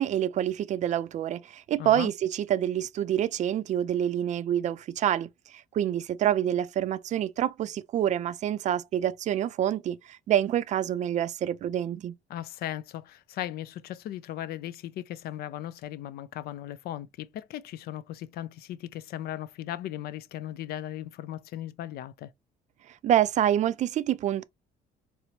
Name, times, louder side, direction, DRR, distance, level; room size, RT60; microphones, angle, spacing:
voice 1, 0.0-5.3 5.7-12.1 23.0-24.4, right 11 dB, 45° right, 0.4 m, -27 dB
voice 2, 1.8-2.1 12.3-22.3, left 12 dB, 65° left, 0.4 m, -37 dB
4.3 x 2.0 x 2.7 m
cardioid pair, 110°, 17 cm